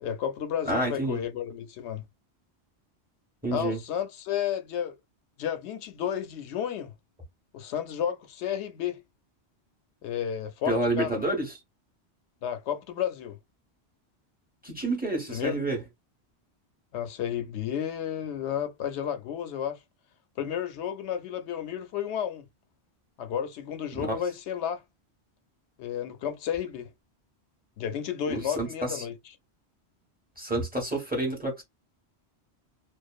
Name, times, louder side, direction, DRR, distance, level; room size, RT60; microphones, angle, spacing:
voice 1, 0.0-2.0 3.5-5.0 5.4-6.9 7.5-9.0 10.0-11.4 12.4-13.4 15.3-15.6 16.9-19.8 20.4-22.4 23.2-24.8 25.8-26.9 27.8-29.1, left 9 dB, 80° left, 0.9 m, -32 dB
voice 2, 0.6-1.2 3.4-3.8 10.7-11.6 14.6-15.8 23.9-24.2 28.3-29.1 30.4-31.6, right 2 dB, 10° right, 1.2 m, -29 dB
2.6 x 2.3 x 2.4 m
omnidirectional pair, 1.1 m